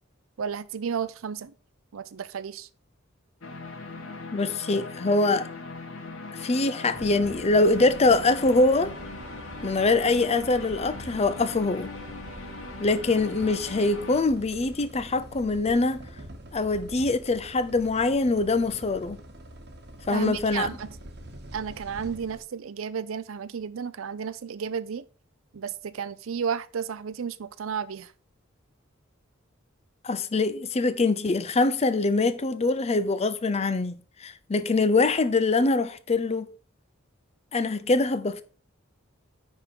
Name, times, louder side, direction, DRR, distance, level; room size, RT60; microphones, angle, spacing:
voice 1, 0.4-1.5 1.9-2.7 20.1-20.9 21.5-25.0 25.5-28.1, right 7 dB, 75° right, 0.5 m, -32 dB
sound 1, 3.4-14.2, left 3 dB, 70° left, 1.4 m, -40 dB
voice 2, 4.3-5.5 6.4-8.9 9.6-11.9 12.8-16.1 16.5-19.2 20.1-20.7 30.0-36.5 37.5-38.4, left 3 dB, 30° left, 0.5 m, -24 dB
sound 2, 6.9-22.4, right 1 dB, 55° right, 1.1 m, -45 dB
9.8 x 3.7 x 4.5 m
head